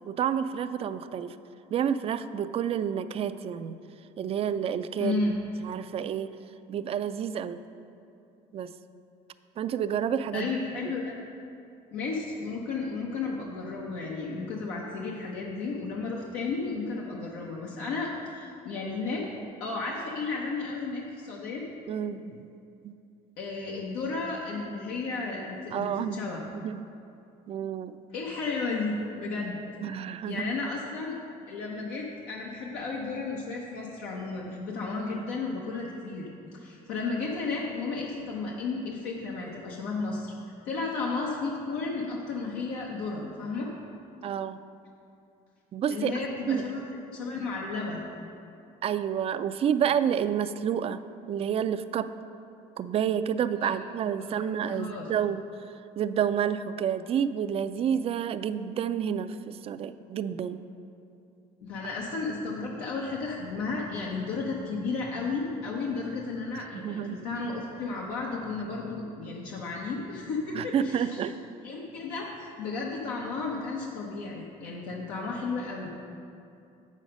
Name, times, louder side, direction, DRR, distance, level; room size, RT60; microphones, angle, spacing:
voice 1, 0.1-1.4 1.7-3.8 4.2-5.3 5.6-6.3 6.7-7.6 8.5-8.7 9.6-10.5 21.9-22.4 22.8-22.9 25.7-26.2 26.5-26.9 27.5-28.0 29.8-30.5 35.1-35.2 44.2-44.6 45.7-46.1 46.5-46.6 48.8-51.0 51.3-52.1 52.8-55.5 56.0-60.6 66.5-67.2 70.5-71.4, right 8 dB, 40° right, 12 dB, 0.3 m, -29 dB
voice 2, 5.0-5.4 10.3-11.2 11.9-19.3 19.6-21.6 23.4-26.4 28.1-29.6 30.3-31.2 31.5-40.3 40.6-43.7 45.9-48.0 53.6-53.7 54.2-54.4 54.7-55.1 61.6-71.2 71.6-75.9, left 3 dB, 90° left, -2 dB, 0.9 m, -33 dB
7.6 x 6.3 x 5.3 m, 2.6 s
cardioid pair, 100°, 15 cm